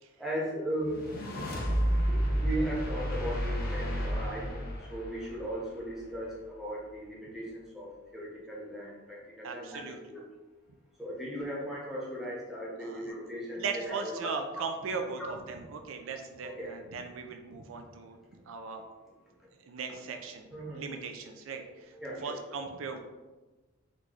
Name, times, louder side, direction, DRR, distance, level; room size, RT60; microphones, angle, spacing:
voice 1, 0.2-1.0 2.1-4.6 4.9-10.2 11.0-14.6 15.2-15.3 16.4-16.7 20.5-21.0 21.5-22.4, equal, ahead, -6 dB, 0.9 m, -37 dB
sound 1, 0.8-6.2, equal, 45° left, 0.7 m, -31 dB
voice 2, 9.4-10.0 12.8-13.0 13.6-18.2 18.5-18.8 19.6-20.5 20.7-21.9 22.2-23.0, right 5 dB, 70° right, 5 dB, 0.4 m, -38 dB
4.1 x 3.2 x 3.0 m, 1.2 s
head